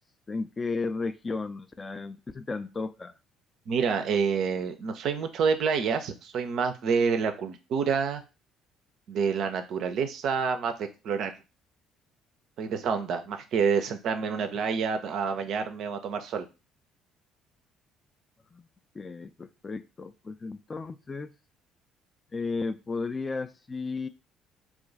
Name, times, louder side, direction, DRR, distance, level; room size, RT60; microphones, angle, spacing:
voice 1, 0.3-3.1 18.5-18.7 18.9-21.4 22.3-24.1, left 4 dB, 30° left, 11 dB, 0.3 m, -34 dB
voice 2, 3.7-8.2 9.1-11.3 12.6-16.5, right 6 dB, 55° right, 7 dB, 0.4 m, -28 dB
2.4 x 2.2 x 3.7 m, 0.29 s
figure-of-eight pair, 50°, 0 cm